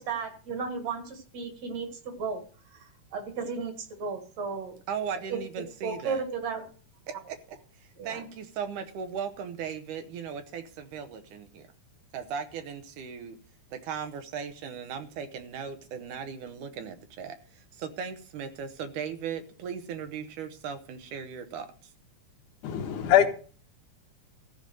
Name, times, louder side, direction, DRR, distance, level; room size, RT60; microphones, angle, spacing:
voice 1, 0.0-2.4 3.1-3.7 4.0-4.8 5.3-5.4 5.8-6.7 8.0-8.2, right 5 dB, 60° right, 7 dB, 2.8 m, -34 dB
voice 2, 4.9-6.2 7.1-11.7 12.1-13.4 13.7-21.9, right 7 dB, 80° right, 8 dB, 2.6 m, -37 dB
voice 3, 22.6-23.3, left 10 dB, 80° left, 6 dB, 2.7 m, -22 dB
14.0 x 5.4 x 7.6 m, 0.41 s
omnidirectional pair, 3.6 m